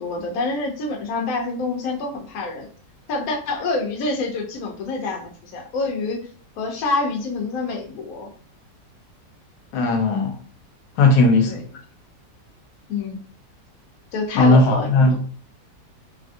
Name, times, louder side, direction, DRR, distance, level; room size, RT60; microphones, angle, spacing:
voice 1, 0.0-2.7 3.1-6.3 6.6-8.3 11.5-11.6 12.9-13.2 14.1-14.9, left 3 dB, 65° left, 1.0 m, -27 dB
voice 2, 9.7-10.4 11.0-11.6 14.3-15.2, left 2 dB, 85° left, 1.3 m, -16 dB
3.2 x 2.4 x 2.5 m
omnidirectional pair, 1.9 m